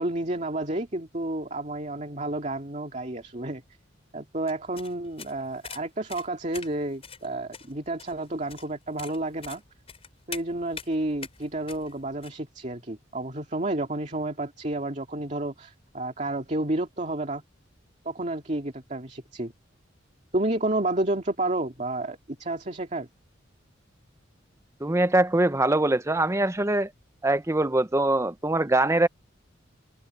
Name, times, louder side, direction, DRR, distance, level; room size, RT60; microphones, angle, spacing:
voice 1, 0.0-3.6 4.1-9.6 10.3-17.4 18.0-19.5 20.3-23.1, right 2 dB, 40° right, 2.4 m, -30 dB
sound 1, 4.5-12.3, left 6 dB, 30° left, 5.6 m, -44 dB
voice 2, 24.8-26.9 27.2-29.1, right 2 dB, 15° right, 0.7 m, -23 dB
head